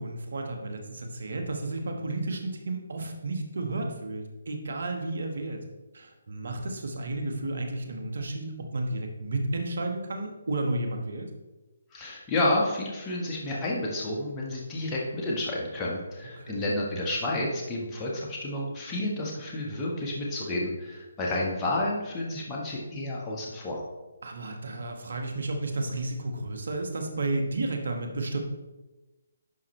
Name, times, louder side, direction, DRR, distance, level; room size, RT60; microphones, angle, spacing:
voice 1, 0.0-5.6 5.9-11.3 16.4-16.7 24.2-28.4, right 2 dB, 65° right, 4 dB, 1.5 m, -32 dB
voice 2, 11.9-23.8, left 1 dB, 15° left, -4 dB, 1.5 m, -30 dB
10.5 x 5.7 x 3.3 m, 1.1 s
figure-of-eight pair, 145°, 0 cm